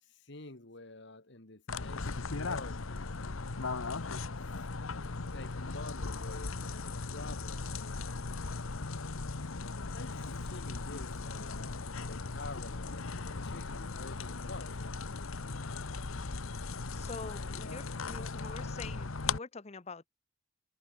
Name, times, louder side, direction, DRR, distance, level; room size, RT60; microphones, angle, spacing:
voice 1, 0.0-3.2 3.9-4.8 5.3-8.2 9.8-15.1 17.5-18.0, left 2 dB, 55° left, 2.1 m, -49 dB
sound 1, 1.7-19.4, left 4 dB, 75° left, 1.1 m, -38 dB
voice 2, 17.0-20.1, left 3 dB, 30° left, 0.7 m, -45 dB
head